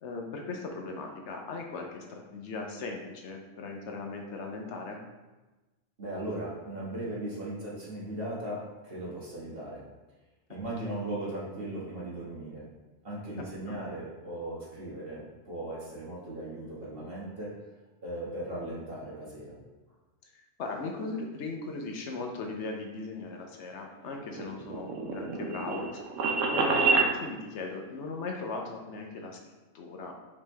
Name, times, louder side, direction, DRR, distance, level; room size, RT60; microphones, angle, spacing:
voice 1, 0.0-5.0 10.5-10.9 13.7-13.8 20.3-26.1 26.5-29.4 29.7-30.2, left 3 dB, 70° left, 2 dB, 0.9 m, -38 dB
voice 2, 6.0-9.8 10.5-12.7 13.0-17.5 18.0-19.6, right 1 dB, 50° right, -8 dB, 1.7 m, -38 dB
sound 1, 24.1-27.1, right 4 dB, 90° right, 1.0 m, -27 dB
5.1 x 3.2 x 3.3 m, 1.2 s
omnidirectional pair, 1.3 m